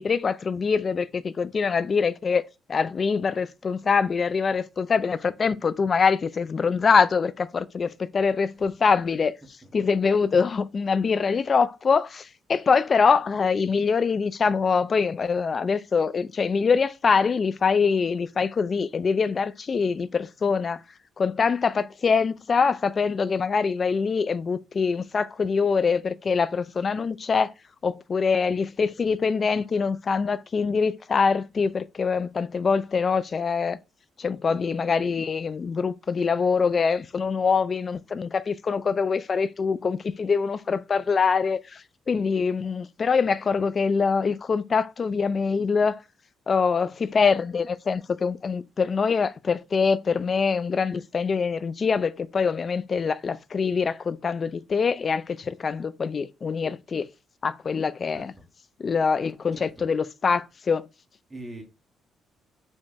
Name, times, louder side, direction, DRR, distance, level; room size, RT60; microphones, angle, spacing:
voice 1, 0.0-9.4 9.7-20.8 21.2-27.5 27.8-33.8 34.2-46.0 46.5-57.1 57.4-58.3 58.8-60.9, left 5 dB, 40° left, 0.4 m, -24 dB
voice 2, 58.1-58.4 59.5-59.9 61.3-61.6, right 1 dB, 20° right, 1.6 m, -42 dB
4.6 x 3.3 x 3.0 m
cardioid pair, 90°, 0 cm